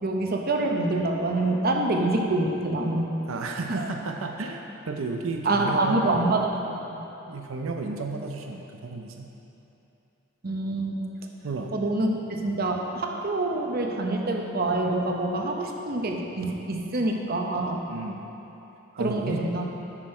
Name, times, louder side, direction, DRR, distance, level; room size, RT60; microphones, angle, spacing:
voice 1, 0.0-3.1 3.7-3.9 5.4-6.5 6.9-7.1 10.4-11.1 11.7-17.8 19.0-19.7, right 2 dB, 50° right, 1 dB, 0.8 m, -26 dB
voice 2, 3.3-6.3 7.3-9.3 11.4-11.7 17.6-18.3 19.0-19.4, right 3 dB, 85° right, 3 dB, 0.6 m, -33 dB
9.9 x 6.2 x 4.4 m, 3.0 s
head